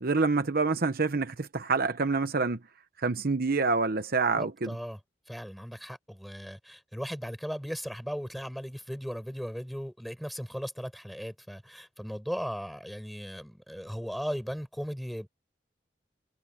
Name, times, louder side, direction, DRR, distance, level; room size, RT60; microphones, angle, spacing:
voice 1, 0.0-2.6 3.0-4.7, right 4 dB, 55° right, 0.9 m, -27 dB
voice 2, 4.3-5.0 5.3-15.3, equal, ahead, 6.6 m, -37 dB
head